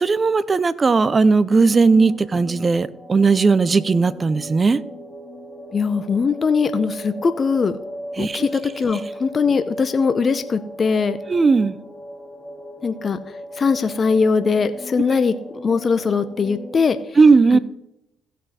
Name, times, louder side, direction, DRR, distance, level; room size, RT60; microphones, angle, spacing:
voice 1, 0.0-4.8 8.2-8.5 11.3-11.8 17.2-17.6, right 4 dB, 35° right, 17 dB, 0.6 m, -17 dB
sound 1, 1.5-16.9, equal, 10° left, 2.7 m, -37 dB
voice 2, 5.7-7.8 8.2-11.2 12.8-13.2 13.6-15.3 15.6-17.0 17.5-17.6, left 5 dB, 40° left, 11 dB, 0.7 m, -20 dB
15.5 x 5.5 x 4.2 m, 0.80 s
hypercardioid pair, 55°, 0 cm